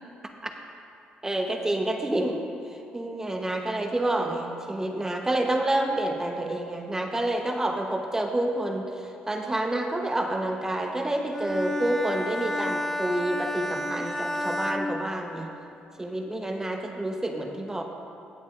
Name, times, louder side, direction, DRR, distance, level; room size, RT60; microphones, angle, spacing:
voice 1, 1.2-2.4 2.7-15.5 16.0-17.8, right 1 dB, 15° right, 3 dB, 0.9 m, -28 dB
Bowed string instrument, 11.3-15.8, left 1 dB, 10° left, 0.7 m, -31 dB
17.0 x 8.1 x 2.5 m, 2.6 s
cardioid pair, 75°, 3 cm